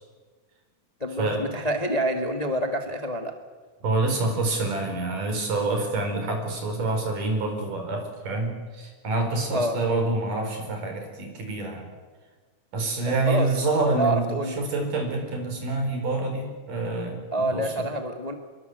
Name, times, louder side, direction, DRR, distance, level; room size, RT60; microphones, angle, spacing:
voice 1, 1.0-3.3 9.5-9.7 13.0-13.5 13.9-14.6 17.3-18.3, right 1 dB, 20° left, 5 dB, 1.2 m, -27 dB
voice 2, 3.8-11.9 12.7-17.7, right 2 dB, 90° right, 4 dB, 6.2 m, -27 dB
25.0 x 22.5 x 8.1 m, 1.4 s
omnidirectional pair, 3.6 m